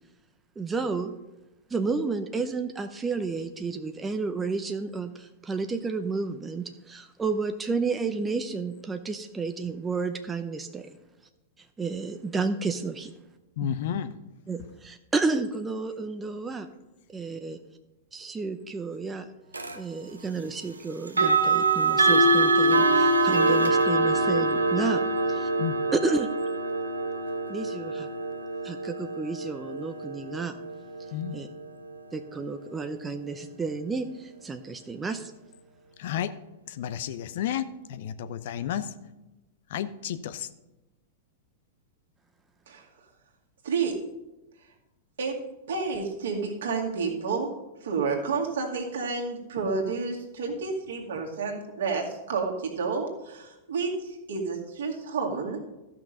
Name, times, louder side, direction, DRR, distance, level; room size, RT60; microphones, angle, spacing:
voice 1, 0.6-1.1 1.7-10.9 11.8-13.1 13.6-13.8 14.5-16.7 17.1-17.6 18.1-19.3 19.8-25.0 25.3-25.5 25.9-26.3 27.5-28.1 28.6-30.5 31.3-31.5 32.1-35.3, right 4 dB, 15° right, 7 dB, 0.7 m, -31 dB
voice 2, 13.6-14.1 25.6-25.8 31.1-31.4 36.0-36.3 36.7-38.9 39.7-40.5, left 9 dB, 60° left, 12 dB, 0.7 m, -31 dB
sound 1, 19.5-19.8 21.1-31.9, right 2 dB, 85° right, 0.9 m, -24 dB
voice 3, 43.6-43.9 45.2-45.4 45.7-47.5 47.8-55.6, right 4 dB, 65° right, 0 dB, 2.2 m, -30 dB
13.5 x 6.0 x 5.3 m, 1.0 s
figure-of-eight pair, 100°, 0 cm